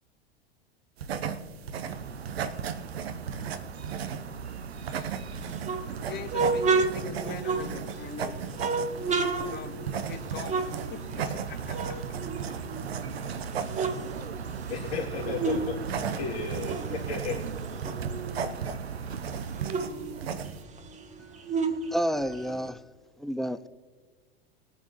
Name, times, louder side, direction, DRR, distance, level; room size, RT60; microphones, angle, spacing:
sound 1, 1.0-20.6, right 7 dB, 75° right, 1.0 m, -37 dB
sound 2, 1.9-19.7, right 6 dB, 90° right, 0.7 m, -39 dB
sound 3, 5.4-8.1 8.5-11.4 11.7-13.0 13.4-15.7 16.0-18.6 18.9-19.0 19.3-22.7, right 4 dB, 25° right, 1.3 m, -31 dB
voice 1, 6.0-8.5 9.2-12.0, left 7 dB, 35° left, 7 dB, 1.6 m, -42 dB
voice 2, 14.7-17.4, left 4 dB, 70° left, -1 dB, 2.9 m, -34 dB
voice 3, 21.9-22.8 23.2-23.7, equal, ahead, 12 dB, 0.5 m, -30 dB
21.5 x 9.5 x 3.1 m, 1.4 s
hypercardioid pair, 85°, 31 cm